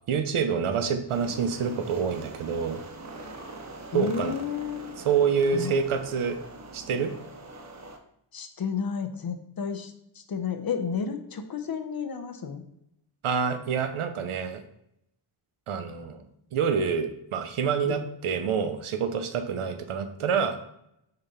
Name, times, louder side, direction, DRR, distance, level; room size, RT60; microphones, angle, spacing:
voice 1, 0.1-2.8 3.9-4.4 5.0-6.4 6.7-7.1 13.2-14.6 15.7-16.2 16.5-20.6, right 6 dB, 90° right, 8 dB, 0.8 m, -27 dB
sound 1, 1.1-8.0, right 2 dB, 35° right, 0.7 m, -43 dB
voice 2, 3.9-4.9 5.5-5.7 8.3-12.6 17.8-18.0, left 6 dB, 50° left, 7 dB, 0.8 m, -32 dB
6.5 x 4.1 x 4.2 m, 0.78 s
wide cardioid pair, 120°, 48 cm